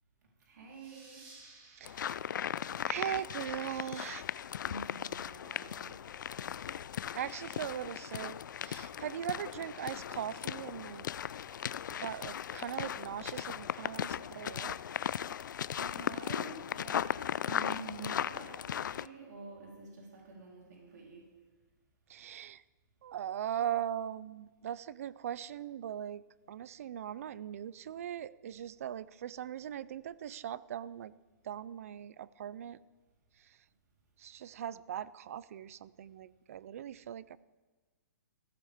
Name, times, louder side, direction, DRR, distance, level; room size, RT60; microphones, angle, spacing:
voice 1, 0.4-1.3 4.6-6.1 15.8-17.1 17.5-21.2, right 3 dB, 65° right, -4 dB, 3.9 m, -48 dB
sound 1, 0.7-3.9, right 3 dB, 30° right, 2.6 m, -59 dB
sound 2, 1.8-19.1, left 9 dB, 75° left, 0.4 m, -38 dB
voice 2, 2.9-4.2 7.1-11.1 12.0-14.7 22.1-22.6 23.0-26.2 26.5-31.1 31.5-32.8 34.2-37.4, right 10 dB, 45° right, 19 dB, 0.4 m, -40 dB
16.0 x 14.0 x 3.6 m, 1.3 s
hypercardioid pair, 170°, 10 cm